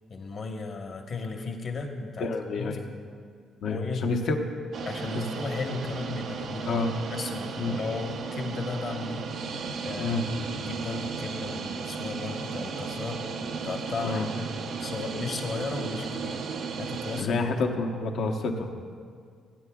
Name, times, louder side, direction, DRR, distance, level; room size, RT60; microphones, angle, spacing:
voice 1, 0.1-2.3 2.6-2.7 3.6-4.1 4.8-6.8 7.1-9.3 9.8-13.2 13.6-14.5 14.8-16.4 16.8-17.4, left 4 dB, 50° left, 4 dB, 1.1 m, -35 dB
voice 2, 2.2-2.8 3.6-4.3 5.1-5.2 6.7-6.9 7.6-7.7 10.0-10.2 14.0-14.3 17.2-18.8, left 3 dB, 70° left, 3 dB, 1.0 m, -28 dB
sound 1, 4.7-17.2, right 5 dB, 70° right, 0.7 m, -35 dB
16.5 x 9.2 x 2.3 m, 2.1 s
cardioid pair, 90°, 0 cm